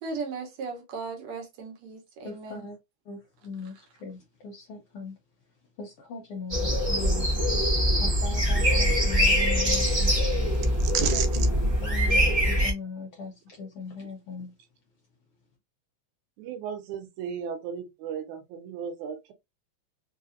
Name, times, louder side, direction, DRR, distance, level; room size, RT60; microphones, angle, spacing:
voice 1, 0.0-2.7, right 4 dB, 70° right, 2.1 m, -37 dB
voice 2, 2.2-2.8 3.1-5.2 5.8-7.3 8.0-10.1 10.4-10.5 11.1-14.5, left 3 dB, 75° left, 1.3 m, -40 dB
sound 1, 6.5-12.7, equal, 35° right, 0.7 m, -23 dB
voice 3, 10.8-11.3 16.4-19.3, right 8 dB, 85° right, 2.1 m, -33 dB
4.9 x 2.6 x 2.5 m
omnidirectional pair, 3.4 m